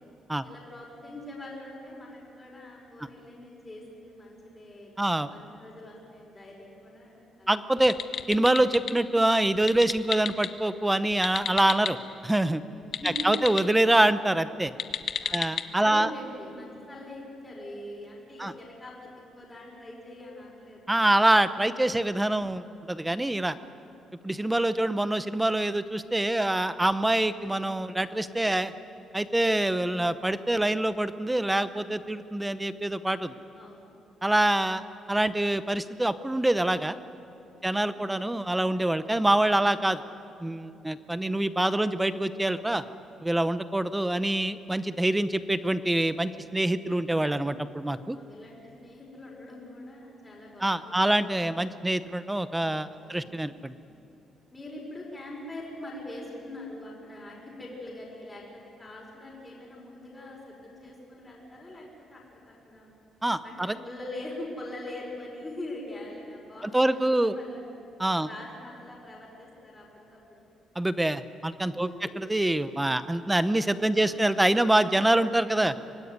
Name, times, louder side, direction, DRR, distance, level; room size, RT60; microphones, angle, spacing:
voice 1, 0.4-7.6 12.7-13.4 15.2-20.9 26.3-26.7 33.6-33.9 37.5-38.0 47.9-51.2 52.9-53.4 54.5-58.4 58.8-62.9 63.4-67.8 68.2-70.5 71.8-72.1 73.9-74.2, left 1 dB, 15° left, -4 dB, 5.1 m, -43 dB
voice 2, 5.0-5.3 7.5-7.9 8.3-12.0 12.2-12.6 13.2-14.7 15.3-16.1 18.4-18.5 20.9-23.6 24.2-28.7 29.1-33.3 34.2-34.8 35.1-37.0 37.6-40.0 40.4-42.8 43.2-48.2 50.6-53.7 63.2-63.8 66.6-67.3 68.0-68.3 70.8-71.9 72.2-75.7, right 1 dB, 5° right, 13 dB, 0.7 m, -25 dB
sound 1, 7.8-8.9 9.5-10.5 11.1-11.9 12.8-13.6 14.7-15.6, left 7 dB, 40° left, 1.0 m, -32 dB
24.5 x 19.0 x 9.6 m, 2.6 s
cardioid pair, 175°, 0 cm